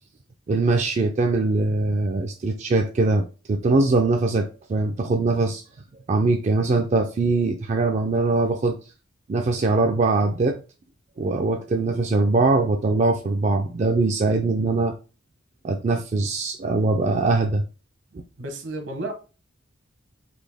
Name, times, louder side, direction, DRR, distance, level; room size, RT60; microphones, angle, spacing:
voice 1, 0.5-3.2 3.5-5.6 6.1-8.8 9.3-10.6 11.2-14.9 15.6-17.6, right 3 dB, 35° right, 4 dB, 0.4 m, -22 dB
voice 2, 18.4-19.1, right 2 dB, 70° right, 5 dB, 1.0 m, -32 dB
4.1 x 2.7 x 3.4 m, 0.33 s
head